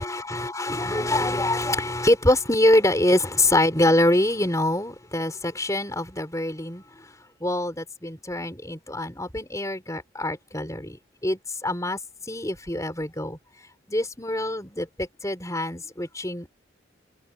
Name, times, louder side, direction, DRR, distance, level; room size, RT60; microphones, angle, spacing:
voice 1, 0.0-7.0 7.4-12.0 12.3-13.4 13.9-16.5, left 1 dB, 15° left, 5.1 m, -25 dB
head